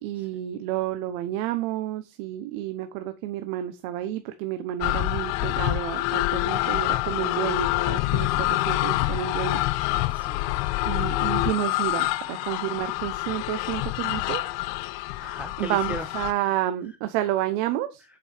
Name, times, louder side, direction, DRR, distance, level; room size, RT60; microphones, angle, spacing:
voice 1, 0.0-10.2 10.8-14.4 15.6-18.0, right 13 dB, 75° right, 0.9 m, -30 dB
sound 1, 4.8-16.3, left 18 dB, 65° left, 0.6 m, -26 dB
voice 2, 10.0-11.1 12.2-12.6 15.2-16.1 16.4-16.5, right 1 dB, 5° right, 0.3 m, -40 dB
7.4 x 5.4 x 4.4 m
cardioid pair, 150°, 37 cm